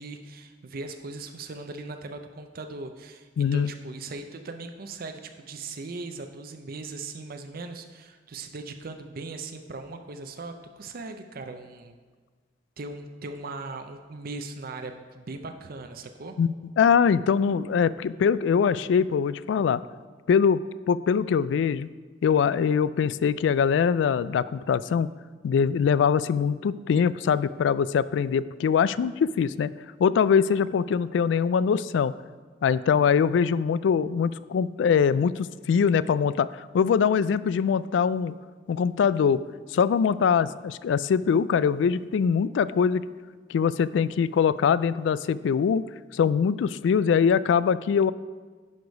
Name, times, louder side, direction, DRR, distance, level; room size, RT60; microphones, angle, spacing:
voice 1, 0.0-12.0 12.8-16.4, right 3 dB, 55° right, 6 dB, 0.5 m, -39 dB
voice 2, 3.4-3.7 16.4-19.8 20.3-21.9 22.2-25.1 25.4-29.7 30.0-32.1 32.6-38.3 38.7-39.4 39.7-43.1 43.5-45.8 46.1-48.1, left 6 dB, 80° left, 17 dB, 0.3 m, -23 dB
10.5 x 4.9 x 5.2 m, 1.4 s
head